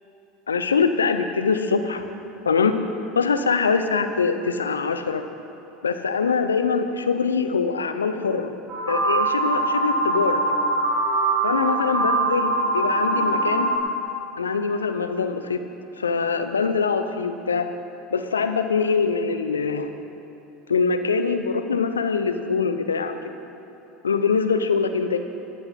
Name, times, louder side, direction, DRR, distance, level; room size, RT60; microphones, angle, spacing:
voice 1, 0.5-2.0 2.5-2.8 3.2-5.2 5.8-8.6 8.9-10.5 11.4-13.7 14.4-15.6 16.0-17.7 18.1-19.9 20.7-23.2 24.0-25.2, left 5 dB, 85° left, 9 dB, 0.6 m, -23 dB
sound 1, 8.7-13.8, right 2 dB, 40° right, 2.9 m, -23 dB
13.5 x 10.5 x 4.2 m, 3.0 s
figure-of-eight pair, 75°, 0 cm